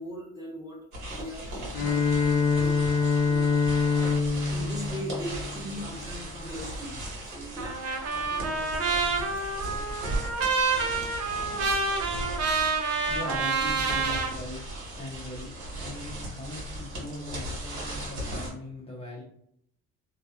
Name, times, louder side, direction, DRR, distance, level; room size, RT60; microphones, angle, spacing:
voice 1, 0.0-3.5 3.9-7.0 7.2-9.1 10.2-10.5 11.0-11.1, equal, 10° right, -3 dB, 1.0 m, -41 dB
sound 1, 0.9-18.5, right 1 dB, 80° right, 1.4 m, -37 dB
Bowed string instrument, 1.7-6.0, left 4 dB, 80° left, 0.7 m, -25 dB
Trumpet, 7.6-14.3, right 4 dB, 55° right, 0.6 m, -28 dB
voice 2, 13.1-14.6 15.0-15.5 15.8-19.2, left 1 dB, 20° left, -5 dB, 0.7 m, -40 dB
2.8 x 2.2 x 2.3 m, 0.70 s
cardioid pair, 90°, 30 cm